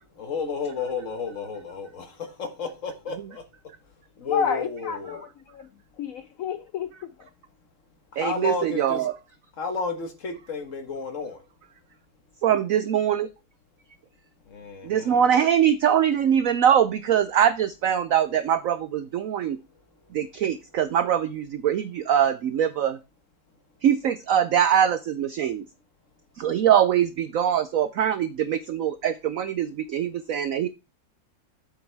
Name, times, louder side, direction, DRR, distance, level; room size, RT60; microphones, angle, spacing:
voice 1, 0.2-3.4 4.2-5.2 8.2-9.1 9.6-11.4 14.5-15.3, left 4 dB, 45° left, 1.5 m, -32 dB
voice 2, 4.2-5.7 6.0-7.3, left 7 dB, 90° left, 0.7 m, -31 dB
voice 3, 8.2-9.1 12.4-13.3 14.8-19.6 20.1-23.0 23.8-25.6 26.4-30.7, right 9 dB, 90° right, 0.7 m, -23 dB
7.9 x 6.7 x 3.3 m
omnidirectional pair, 2.1 m